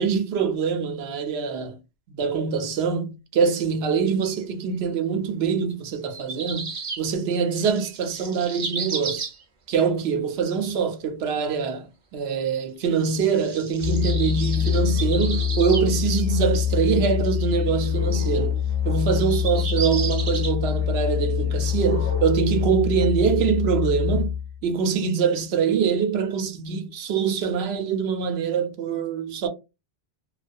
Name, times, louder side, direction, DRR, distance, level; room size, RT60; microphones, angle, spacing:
voice 1, 0.0-1.8 2.1-9.3 9.7-18.6 18.8-24.4 24.6-29.5, right 6 dB, 80° right, 0.8 m, -24 dB
sound 1, 4.4-4.5 6.0-7.0 7.3-9.4 13.0-15.9 16.2-16.3 16.8-16.9 17.4-17.7 18.2-18.3 19.1-20.5, right 5 dB, 50° right, 0.6 m, -33 dB
Musical instrument, 13.8-24.6, left 9 dB, 45° left, 0.7 m, -25 dB
2.3 x 2.2 x 2.5 m
omnidirectional pair, 1.1 m